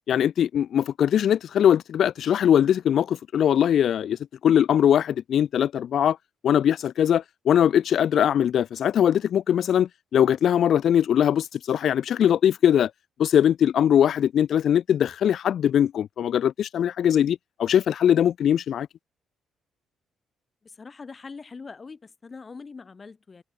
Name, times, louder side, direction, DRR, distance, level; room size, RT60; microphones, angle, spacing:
voice 1, 0.1-4.2 4.4-6.2 6.4-12.9 13.2-18.9, left 9 dB, 65° left, 0.9 m, -21 dB
voice 2, 20.6-23.4, left 4 dB, 35° left, 6.4 m, -42 dB
cardioid pair, 90°, 0 cm